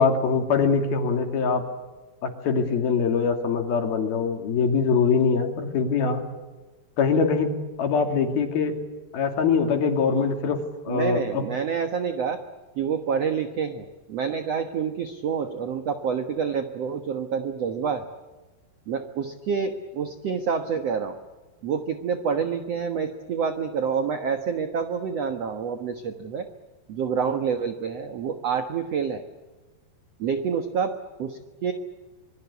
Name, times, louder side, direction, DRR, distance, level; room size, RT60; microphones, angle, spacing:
voice 1, 0.0-1.7 2.2-6.2 7.0-7.5 7.8-8.8 9.1-10.6 10.9-11.4, left 5 dB, 70° left, 5 dB, 4.5 m, -23 dB
voice 2, 10.9-12.4 12.8-18.1 18.9-21.2 21.6-26.5 26.9-29.2 30.2-31.7, right 6 dB, 55° right, 7 dB, 1.9 m, -28 dB
26.0 x 24.0 x 8.4 m, 1.2 s
omnidirectional pair, 4.5 m